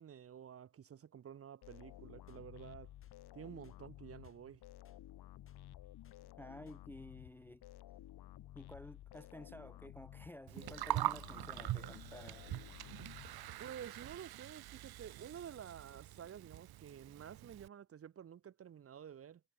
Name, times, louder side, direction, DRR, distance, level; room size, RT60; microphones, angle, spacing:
voice 1, 0.0-2.9 3.3-4.6 13.6-19.4, right 8 dB, 35° right, 1.0 m, -51 dB
sound 1, 1.6-13.8, left 13 dB, 75° left, 2.4 m, -54 dB
sound 2, 2.3-2.4 3.0-3.2 3.6-3.8 4.2-4.4 4.8-5.0 5.5-5.6 6.0-6.2 6.7-6.8, left 6 dB, 35° left, 6.9 m, -72 dB
voice 2, 6.4-7.6 8.5-12.4, left 1 dB, 5° left, 0.6 m, -53 dB
Gurgling, 10.5-17.7, right 15 dB, 70° right, 0.9 m, -43 dB
cardioid pair, 175°, 38 cm